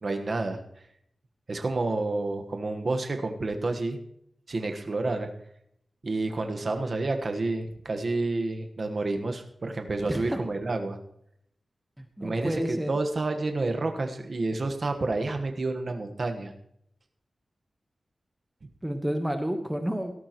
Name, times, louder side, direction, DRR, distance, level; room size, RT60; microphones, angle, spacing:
voice 1, 0.0-0.6 1.5-4.0 4.5-5.3 6.0-11.0 12.2-16.5, right 2 dB, 50° right, 5 dB, 1.3 m, -29 dB
voice 2, 10.0-10.4 12.0-12.9 18.8-20.1, equal, 10° right, 6 dB, 1.1 m, -30 dB
17.5 x 13.5 x 3.0 m, 0.73 s
wide cardioid pair, 115°, 0 cm